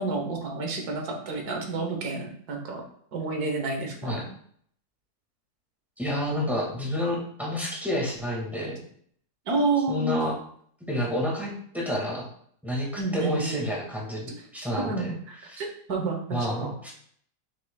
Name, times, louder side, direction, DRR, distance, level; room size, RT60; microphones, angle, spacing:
voice 1, 0.0-2.8 3.1-4.2 9.5-10.2 13.0-13.6 14.8-16.7, right 3 dB, 85° right, 3 dB, 1.7 m, -29 dB
voice 2, 6.0-8.8 9.9-10.3 10.9-12.3 12.6-15.1 15.5-15.6 16.3-16.9, left 1 dB, ahead, -4 dB, 1.8 m, -29 dB
6.6 x 6.1 x 2.3 m, 0.63 s
omnidirectional pair, 1.6 m